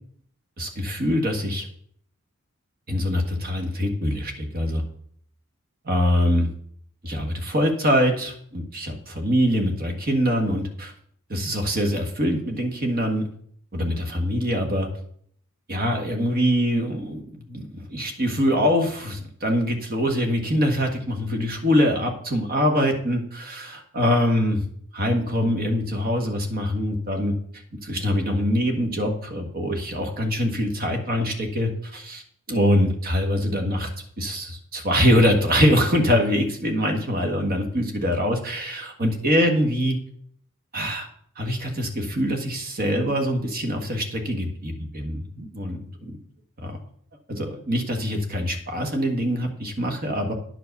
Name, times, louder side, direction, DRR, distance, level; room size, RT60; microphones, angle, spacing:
voice 1, 0.6-1.6 2.9-4.8 5.8-6.5 7.0-10.9 11.3-13.3 13.7-14.9 15.7-24.6 24.9-27.4 27.8-32.2 32.5-33.9 34.2-40.0 40.7-41.1 41.4-46.1 46.6-46.7 47.3-50.3, equal, 45° right, 4 dB, 1.6 m, -24 dB
9.9 x 4.9 x 6.6 m, 0.63 s
head